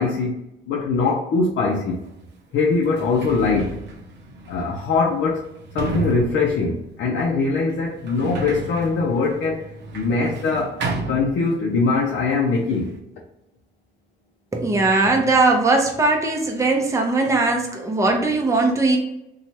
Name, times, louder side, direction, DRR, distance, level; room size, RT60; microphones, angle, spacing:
voice 1, 0.0-2.1 2.5-3.8 4.5-5.5 5.7-9.7 9.9-10.8 11.1-12.9, left 4 dB, 70° left, -2 dB, 0.5 m, -22 dB
Sliding door, 2.0-2.1 2.7-11.9 12.2-13.0, right 2 dB, 60° right, 0.6 m, -33 dB
voice 2, 14.5-19.0, right 3 dB, 15° right, 1 dB, 0.7 m, -19 dB
2.9 x 2.3 x 2.8 m, 0.86 s
cardioid pair, 90°, 20 cm